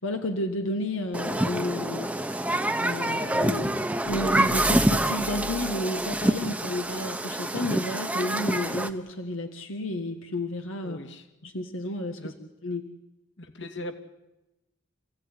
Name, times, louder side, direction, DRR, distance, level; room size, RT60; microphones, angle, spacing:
voice 1, 0.0-2.4 2.8-3.8 4.1-11.0 11.4-12.2 12.6-12.9, left 1 dB, 85° left, 5 dB, 1.8 m, -32 dB
Human group actions, 1.1-8.9, right 1 dB, 5° right, 1.1 m, -26 dB
sound 1, 4.1-7.0, right 1 dB, 45° right, 1.0 m, -40 dB
voice 2, 10.8-11.3 12.1-12.3 13.4-14.0, left 1 dB, 65° left, 7 dB, 2.5 m, -39 dB
28.0 x 16.5 x 10.0 m, 0.97 s
head